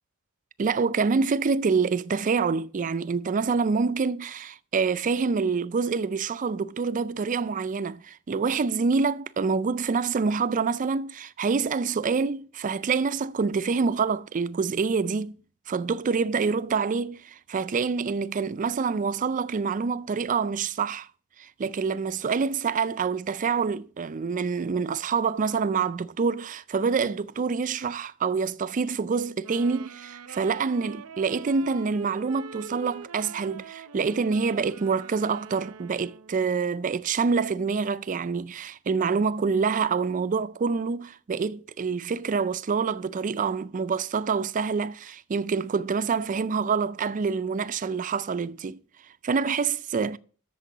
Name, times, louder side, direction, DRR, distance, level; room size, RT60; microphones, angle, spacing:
voice 1, 0.6-15.4 15.7-21.1 21.4-48.8 49.2-50.2, right 5 dB, 35° right, 0.4 m, -26 dB
sound 1, 29.4-36.5, right 6 dB, 75° right, 0.6 m, -44 dB
13.0 x 6.8 x 3.9 m
head